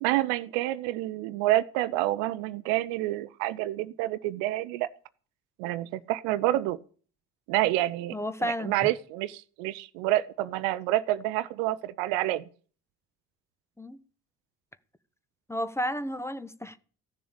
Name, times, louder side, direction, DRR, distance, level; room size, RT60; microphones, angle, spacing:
voice 1, 0.0-4.9 5.6-6.8 7.5-12.4, right 15 dB, 65° right, 0.8 m, -28 dB
voice 2, 8.1-8.7 13.8-14.0 15.5-16.8, equal, 5° left, 1.2 m, -32 dB
15.5 x 7.0 x 8.7 m
figure-of-eight pair, 50°, 47 cm